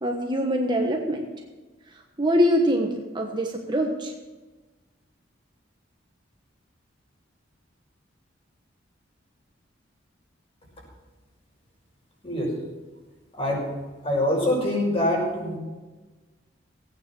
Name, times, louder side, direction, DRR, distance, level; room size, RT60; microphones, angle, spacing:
voice 1, 0.0-1.2 2.2-4.1, equal, 25° right, 1 dB, 1.3 m, -24 dB
voice 2, 13.3-13.6 14.0-15.6, left 1 dB, 30° left, -3 dB, 6.1 m, -24 dB
17.0 x 9.3 x 6.2 m, 1.2 s
head